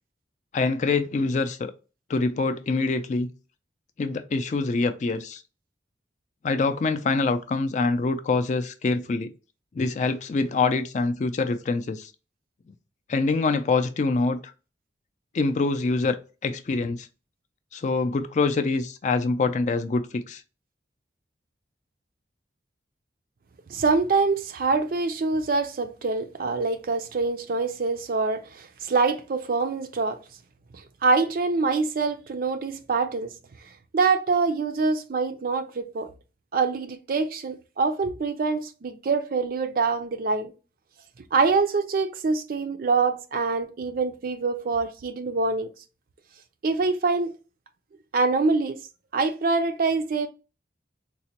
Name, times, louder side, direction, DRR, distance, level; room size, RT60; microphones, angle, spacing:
voice 1, 0.5-1.7 2.1-3.3 4.0-5.4 6.4-9.3 9.7-12.1 13.1-14.5 15.3-16.2 16.4-17.1 17.7-20.4, left 3 dB, 40° left, 0.4 m, -25 dB
voice 2, 23.7-30.2 31.0-33.3 33.9-36.1 36.5-40.5 41.3-45.7 46.6-47.3 48.1-48.8 49.1-50.3, right 4 dB, 50° right, 0.4 m, -25 dB
4.0 x 2.1 x 2.8 m
head